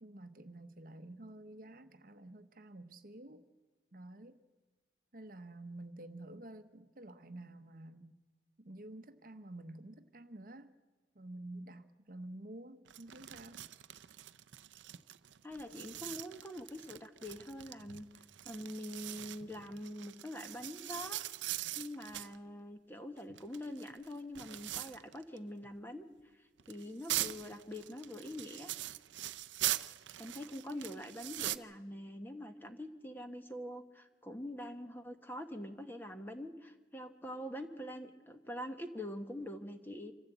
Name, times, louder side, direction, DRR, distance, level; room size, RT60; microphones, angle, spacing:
voice 1, 0.0-3.4 3.9-4.4 5.1-8.2 8.6-10.7 11.1-13.6 30.7-30.8, right 1 dB, 50° right, 0.9 m, -50 dB
sound 1, 12.9-22.4 23.2-25.4 25.6-25.7 26.6-31.6, right 14 dB, 90° right, 0.5 m, -42 dB
voice 2, 15.4-18.1 18.4-21.2 21.7-26.1 26.3-28.7 30.2-40.1, left 1 dB, 10° left, 1.1 m, -44 dB
25.5 x 14.5 x 8.0 m
head